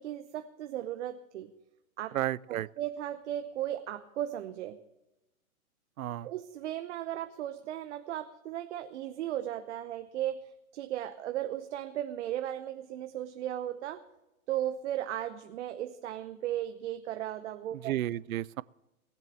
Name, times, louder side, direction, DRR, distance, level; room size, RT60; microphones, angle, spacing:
voice 1, 0.0-1.5 2.0-2.1 2.8-4.8 6.2-10.4 10.7-14.0 14.5-17.9, right 12 dB, 55° right, 1.0 m, -36 dB
voice 2, 2.1-2.7 6.0-6.3 17.7-18.6, right 13 dB, 70° right, 0.6 m, -32 dB
19.0 x 7.5 x 7.6 m
hypercardioid pair, 130°, 43 cm